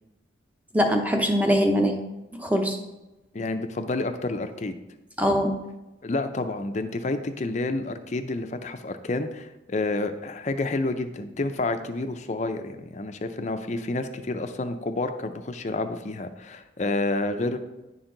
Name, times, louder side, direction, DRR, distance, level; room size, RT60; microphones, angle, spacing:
voice 1, 0.7-1.9 2.4-2.8 5.2-5.5, equal, 10° right, 3 dB, 0.7 m, -22 dB
voice 2, 3.3-4.7 6.0-17.6, left 2 dB, 35° left, 8 dB, 0.5 m, -29 dB
10.0 x 4.5 x 3.8 m, 0.99 s
head